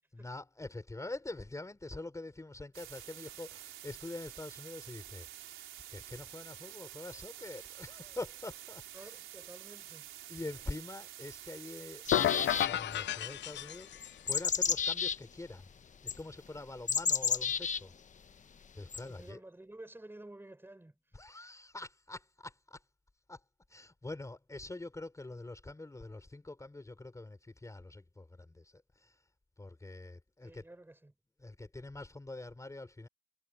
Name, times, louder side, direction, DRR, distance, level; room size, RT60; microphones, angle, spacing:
voice 1, 0.1-5.6 5.9-9.2 10.3-13.9 14.3-17.9 18.7-19.4 21.1-22.8 23.3-23.4 23.7-29.2 29.6-30.6 31.4-33.1, left 2 dB, 15° left, 4.3 m, -45 dB
sound 1, 2.7-12.7, right 13 dB, 85° right, 4.5 m, -49 dB
voice 2, 8.9-10.4 19.1-21.0 30.4-31.1, right 1 dB, 10° right, 5.4 m, -52 dB
sound 2, 12.1-14.2, left 12 dB, 65° left, 0.6 m, -32 dB
sound 3, 12.1-13.0 14.0-15.2 16.1-16.2 16.9-17.8 18.9-19.0, left 6 dB, 40° left, 1.1 m, -31 dB
cardioid pair, 90°, 20 cm